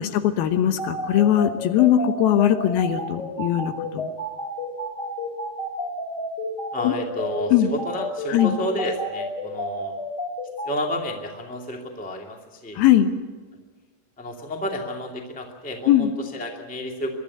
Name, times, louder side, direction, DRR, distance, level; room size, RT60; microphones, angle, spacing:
voice 1, 0.0-4.1 6.8-6.9 7.5-7.7 8.3-8.5 12.8-13.1 15.9-16.1, left 11 dB, 75° left, 9 dB, 2.8 m, -20 dB
jsyd sampleandhold, 0.8-10.7, left 2 dB, 50° left, 7.2 m, -30 dB
voice 2, 6.7-9.9 10.6-12.8 14.2-17.1, equal, 5° left, 2 dB, 1.4 m, -31 dB
24.5 x 11.5 x 9.7 m, 1.4 s
omnidirectional pair, 4.6 m